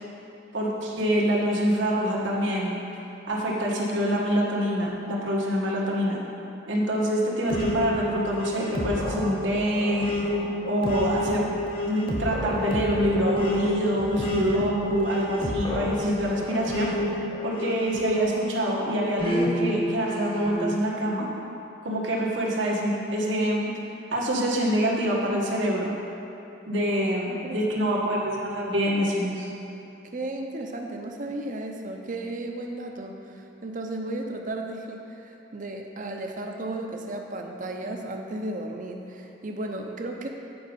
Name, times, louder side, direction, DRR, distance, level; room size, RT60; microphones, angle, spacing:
voice 1, 0.5-2.7 3.3-6.2 6.7-10.1 10.6-11.5 11.9-16.9 17.4-21.3 21.8-23.7 24.1-25.9 26.6-29.5, equal, 85° right, -3 dB, 1.4 m, -25 dB
sound 1, 7.5-18.6 19.2-20.7, equal, 30° left, 1.0 m, -30 dB
voice 2, 27.3-27.6 27.9-28.0 30.1-40.3, right 2 dB, 45° right, 2 dB, 0.7 m, -34 dB
8.8 x 4.9 x 5.2 m, 2.8 s
head